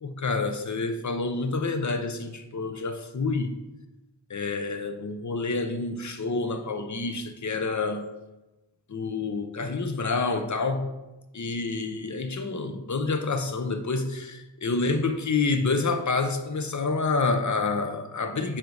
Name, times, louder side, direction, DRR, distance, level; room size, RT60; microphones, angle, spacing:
voice 1, 0.0-3.5 4.3-8.1 8.9-10.9 11.3-18.6, left 3 dB, 45° left, 7 dB, 0.9 m, -28 dB
7.6 x 4.0 x 6.5 m, 1.0 s
wide cardioid pair, 90°, 43 cm